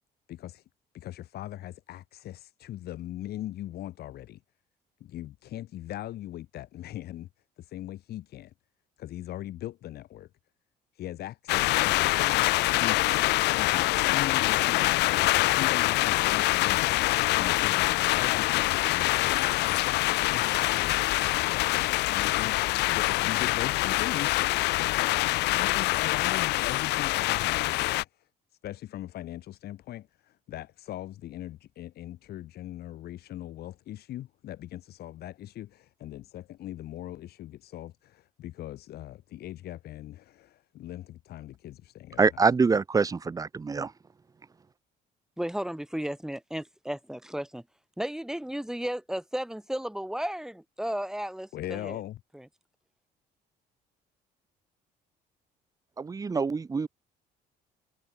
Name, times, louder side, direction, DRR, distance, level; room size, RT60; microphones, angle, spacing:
voice 1, 0.3-0.6 0.9-4.4 5.0-7.3 7.6-8.5 9.0-10.3 10.9-13.0 13.5-16.8 17.4-19.7 20.0-21.1 22.1-22.6 22.9-24.4 25.5-28.3 28.6-42.4 51.5-52.2, left 13 dB, 70° left, 6.2 m, -40 dB
sound 1, 11.5-28.0, left 19 dB, 85° left, 1.5 m, -25 dB
voice 2, 42.2-43.9 56.0-56.9, right 4 dB, 20° right, 0.7 m, -25 dB
voice 3, 45.4-47.6 48.0-52.0 52.3-52.4, equal, 5° right, 6.1 m, -34 dB
cardioid pair, 110°, 17 cm